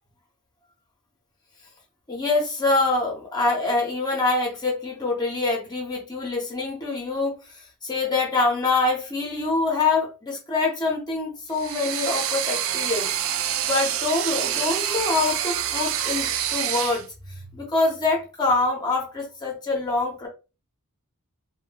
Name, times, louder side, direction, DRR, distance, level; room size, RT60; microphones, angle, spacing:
voice 1, 2.1-13.1 13.6-20.3, left 3 dB, 20° left, 0.7 m, -25 dB
sound 1, 11.5-17.0, right 10 dB, 65° right, 0.3 m, -27 dB
2.2 x 2.1 x 3.3 m
head